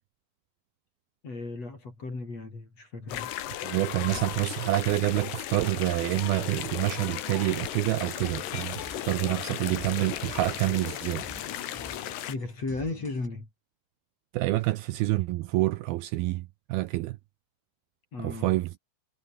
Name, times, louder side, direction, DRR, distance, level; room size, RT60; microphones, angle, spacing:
voice 1, 1.2-3.3 12.3-13.5 18.1-18.6, left 3 dB, 35° left, 8.4 m, -35 dB
sound 1, 3.1-12.4, left 12 dB, 80° left, 3.8 m, -36 dB
voice 2, 3.6-11.2 14.3-16.4 16.7-17.2 18.2-18.7, right 18 dB, 75° right, 2.4 m, -27 dB
sound 2, 8.0-13.3, equal, 5° left, 7.1 m, -48 dB
omnidirectional pair, 4.8 m